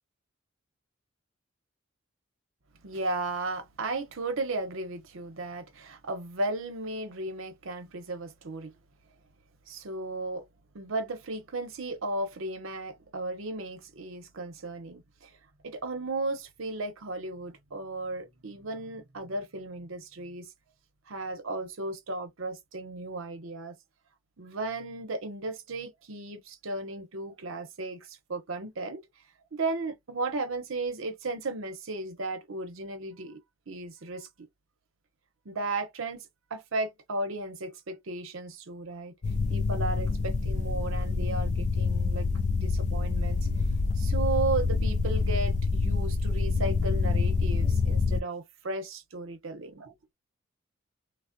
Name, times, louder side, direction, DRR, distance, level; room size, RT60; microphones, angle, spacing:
voice 1, 2.8-8.7 9.7-10.4 10.7-15.3 15.6-20.5 21.1-23.8 24.4-29.0 29.5-33.4 33.7-34.3 35.4-39.1 39.5-42.3 42.5-43.4 44.0-49.9, right 2 dB, 70° right, 0.8 m, -35 dB
sound 1, 39.2-48.2, left 4 dB, 35° left, 0.3 m, -27 dB
3.3 x 2.0 x 2.5 m
head